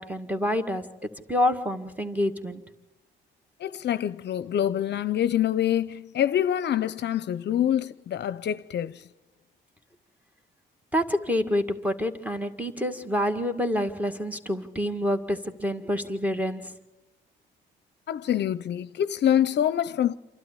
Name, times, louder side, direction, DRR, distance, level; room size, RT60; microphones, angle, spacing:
voice 1, 0.0-2.6 10.9-16.8, left 1 dB, 5° right, 1.9 m, -27 dB
voice 2, 3.6-9.0 18.1-20.1, left 10 dB, 60° left, 0.6 m, -25 dB
28.0 x 12.0 x 9.9 m
cardioid pair, 90°, 20 cm